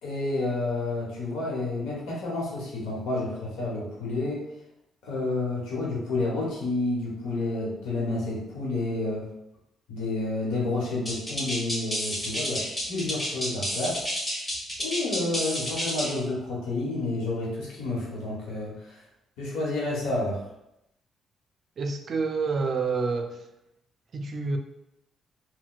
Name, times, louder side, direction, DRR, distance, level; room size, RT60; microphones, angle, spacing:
voice 1, 0.0-4.5 5.0-9.3 9.9-14.0 14.8-19.0 19.4-20.5, left 2 dB, 90° left, -3 dB, 1.0 m, -30 dB
sound 1, 11.1-16.2, equal, 20° left, 1.2 m, -30 dB
voice 2, 21.8-23.5 24.1-24.6, right 4 dB, 50° right, 5 dB, 0.4 m, -28 dB
4.1 x 2.2 x 2.3 m, 0.85 s
cardioid pair, 90°, 0 cm